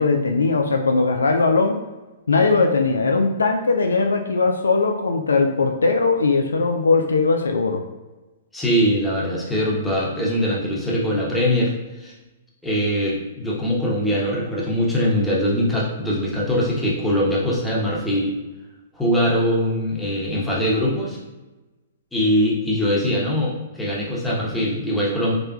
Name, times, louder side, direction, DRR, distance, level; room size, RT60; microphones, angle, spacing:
voice 1, 0.0-1.8 2.3-7.8, left 4 dB, 75° left, 4 dB, 0.3 m, -19 dB
voice 2, 8.5-12.1 12.6-18.3 18.9-21.2 22.1-25.3, equal, 5° left, -5 dB, 0.9 m, -22 dB
3.7 x 3.2 x 2.3 m, 1.1 s
figure-of-eight pair, 115°, 0 cm